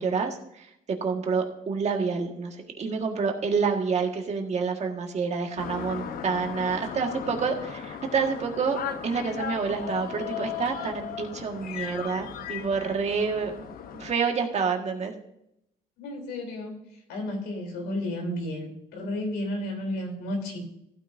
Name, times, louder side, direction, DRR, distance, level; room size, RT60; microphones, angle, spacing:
voice 1, 0.0-13.5 13.9-15.1, right 5 dB, 40° right, 3 dB, 1.8 m, -28 dB
sound 1, 5.6-14.1, left 8 dB, 60° left, 1.0 m, -36 dB
voice 2, 16.0-16.7 17.1-20.6, left 1 dB, 90° left, 2 dB, 3.6 m, -32 dB
15.0 x 9.1 x 2.7 m, 0.78 s
cardioid pair, 110°, 17 cm